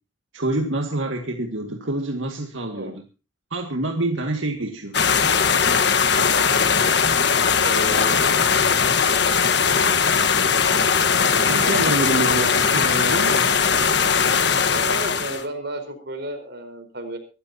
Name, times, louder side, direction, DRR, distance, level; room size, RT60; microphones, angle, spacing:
voice 1, 0.3-3.0 3.5-5.0 11.3-13.4, right 2 dB, 85° right, 3 dB, 2.1 m, -26 dB
sound 1, 4.9-15.4, left 6 dB, 60° left, 1.4 m, -19 dB
voice 2, 7.6-8.3 10.7-11.0 11.3-12.2 14.6-17.2, right 1 dB, 60° right, 7 dB, 4.5 m, -33 dB
sound 2, 8.0-13.8, equal, 5° right, 4.5 m, -42 dB
24.0 x 13.5 x 2.8 m, 0.34 s
head